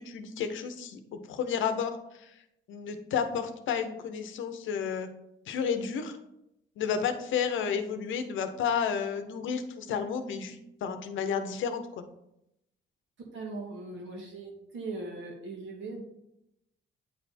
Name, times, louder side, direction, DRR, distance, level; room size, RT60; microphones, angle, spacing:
voice 1, 0.0-2.3 2.7-5.1 5.5-6.2 6.8-12.0, left 7 dB, 80° left, 8 dB, 0.8 m, -31 dB
voice 2, 13.3-16.0, right 3 dB, 75° right, 1 dB, 1.8 m, -39 dB
8.8 x 3.4 x 4.2 m, 0.83 s
cardioid pair, 90°, 20 cm